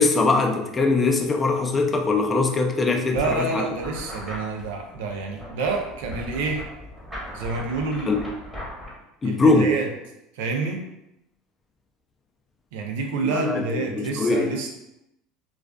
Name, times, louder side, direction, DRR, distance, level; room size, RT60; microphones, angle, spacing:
voice 1, 0.0-3.6 8.1-8.2 9.2-9.7 13.3-14.5, left 3 dB, 20° left, 3 dB, 0.3 m, -21 dB
sound 1, 3.1-8.9, left 1 dB, 10° right, 0.9 m, -38 dB
voice 2, 3.1-6.6 7.3-8.2 9.2-9.9 10.4-10.8 12.7-14.7, right 3 dB, 80° right, 2 dB, 0.4 m, -28 dB
2.4 x 2.3 x 2.2 m, 0.86 s
supercardioid pair, 110°, 0 cm